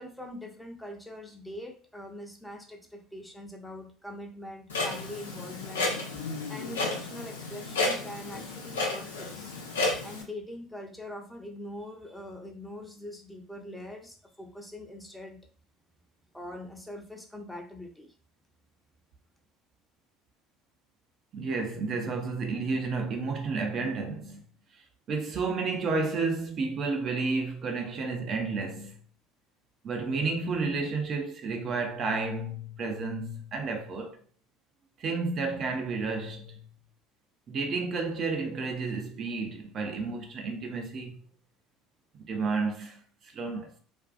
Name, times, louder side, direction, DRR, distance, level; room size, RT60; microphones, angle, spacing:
voice 1, 0.0-5.9 6.5-9.5 10.0-15.4 16.3-18.1, left 1 dB, 5° left, 0.6 m, -43 dB
Clock, 4.7-10.2, left 2 dB, 90° left, 0.5 m, -32 dB
voice 2, 21.3-24.4 24.7-24.8 25.1-29.0 29.8-34.2 35.0-36.6 37.5-41.2 42.3-43.8, right 4 dB, 50° right, 0.5 m, -31 dB
2.5 x 2.2 x 2.4 m
hypercardioid pair, 70°, 0 cm